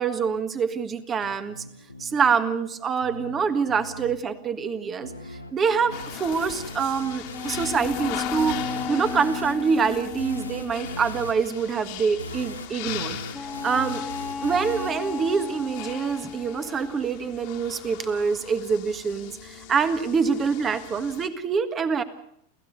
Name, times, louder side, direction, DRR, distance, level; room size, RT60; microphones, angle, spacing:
voice 1, 0.0-1.6 2.0-5.1 5.5-8.6 8.9-13.2 13.6-14.0 14.4-22.0, right 6 dB, 25° right, 11 dB, 1.7 m, -25 dB
sound 1, 1.2-16.2, left 1 dB, 85° left, 1.4 m, -40 dB
sound 2, 5.9-21.3, left 12 dB, 45° left, 2.1 m, -39 dB
sound 3, 7.3-10.9 13.3-17.3, left 5 dB, 10° left, 1.3 m, -35 dB
29.5 x 15.0 x 6.7 m, 0.71 s
figure-of-eight pair, 90°, 0 cm